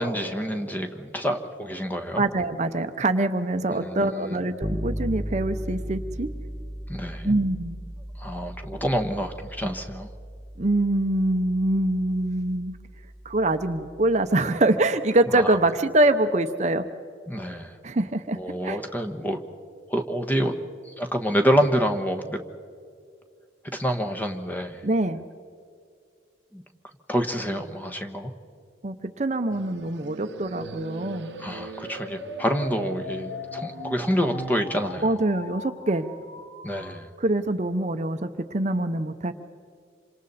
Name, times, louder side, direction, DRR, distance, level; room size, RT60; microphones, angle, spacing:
voice 1, 0.0-2.2 3.7-4.4 6.9-7.4 8.2-10.1 15.3-15.6 17.3-17.7 18.3-19.4 19.9-20.5 20.9-22.4 23.7-24.8 26.5-26.6 27.1-28.3 31.4-35.2 36.6-37.1, equal, 10° left, 6 dB, 1.2 m, -27 dB
voice 2, 2.2-6.3 7.2-7.8 10.6-12.7 13.2-16.8 17.8-18.4 18.6-18.8 24.8-25.2 28.8-31.3 35.0-36.1 37.2-39.3, right 2 dB, 40° right, 9 dB, 0.7 m, -24 dB
Bass guitar, 4.6-14.3, equal, 10° right, 0.8 m, -37 dB
sound 1, 29.5-35.0, right 4 dB, 70° right, 0.8 m, -41 dB
sound 2, 30.0-37.0, left 1 dB, 30° left, 2.3 m, -40 dB
27.5 x 26.0 x 4.2 m, 2.4 s
head